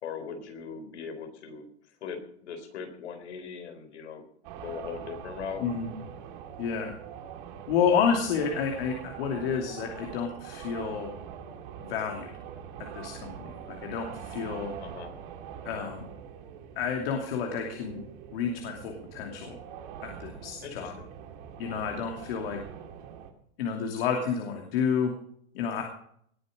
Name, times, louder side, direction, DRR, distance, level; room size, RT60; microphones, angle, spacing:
voice 1, 0.0-4.2 4.6-5.7 14.8-15.1 20.6-21.1, left 6 dB, 80° left, 8 dB, 4.1 m, -40 dB
sound 1, 4.4-23.3, right 8 dB, 50° right, 2.5 m, -43 dB
voice 2, 5.6-5.9 6.6-6.9 7.7-11.1 11.8-12.3 12.9-14.7 15.6-16.0 16.8-18.0 18.3-19.6 20.0-21.0 21.6-22.6 23.6-25.1 25.5-25.8, left 6 dB, 60° left, 2 dB, 2.8 m, -30 dB
19.5 x 10.0 x 5.2 m, 0.65 s
hypercardioid pair, 145°, 34 cm